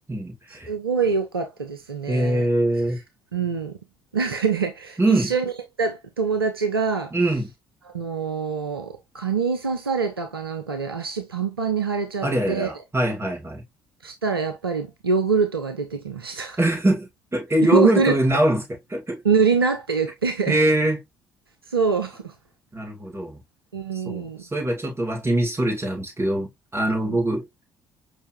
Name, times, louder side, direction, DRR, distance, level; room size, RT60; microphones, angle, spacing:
voice 1, 0.0-0.7 2.1-3.0 5.0-5.3 7.1-7.5 12.2-13.6 16.6-19.2 20.5-21.0 22.7-23.4 24.0-27.4, right 1 dB, 20° right, 2.6 m, -23 dB
voice 2, 0.7-2.5 3.3-3.7 4.1-5.5 5.8-7.1 7.9-12.7 14.0-16.6 17.7-18.2 19.2-20.5 21.7-22.3 23.7-24.4 27.1-27.2, right 5 dB, 90° right, 0.5 m, -25 dB
5.3 x 3.5 x 2.2 m
figure-of-eight pair, 50°, 12 cm